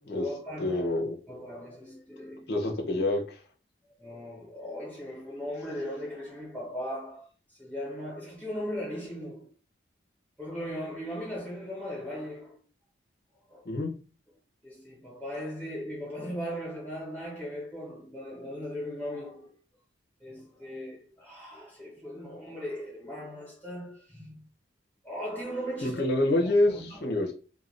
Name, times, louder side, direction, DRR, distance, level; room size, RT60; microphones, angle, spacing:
voice 1, 0.1-0.8 1.3-2.5 4.0-7.3 7.6-9.5 10.4-12.6 13.5-13.6 14.6-19.5 20.2-24.4 25.0-26.1 26.4-27.2, equal, 5° left, 1.0 m, -38 dB
voice 2, 0.6-1.2 2.5-3.4 13.7-13.9 25.8-27.3, left 1 dB, 55° left, 0.6 m, -27 dB
2.4 x 2.2 x 3.2 m
head